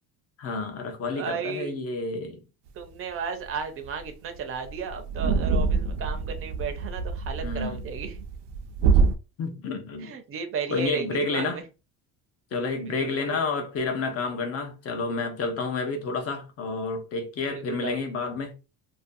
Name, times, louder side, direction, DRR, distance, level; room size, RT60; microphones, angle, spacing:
voice 1, 0.4-2.4 7.4-7.8 9.4-10.1 10.7-11.6 12.5-18.5, left 3 dB, 35° left, 0.6 m, -30 dB
voice 2, 1.1-1.7 2.7-8.2 10.0-11.6 12.8-13.4 17.5-18.0, right 6 dB, 35° right, 0.5 m, -34 dB
sound 1, 3.5-3.6 3.9-4.0 4.4-4.5 4.7-9.2, right 5 dB, 80° right, 0.5 m, -25 dB
2.5 x 2.2 x 2.5 m
cardioid pair, 150°, 40 cm